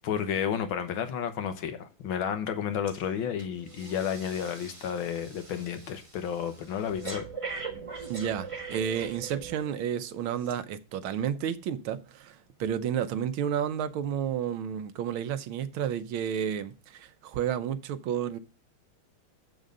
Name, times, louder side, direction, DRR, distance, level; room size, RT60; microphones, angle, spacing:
voice 1, 0.0-7.3, left 8 dB, 80° left, 1.8 m, -31 dB
Breathing, 2.9-3.1 3.4-9.8 10.4-10.5, right 5 dB, 20° right, 1.1 m, -42 dB
voice 2, 8.1-18.4, right 9 dB, 90° right, 1.6 m, -31 dB
7.2 x 6.3 x 5.3 m
omnidirectional pair, 2.2 m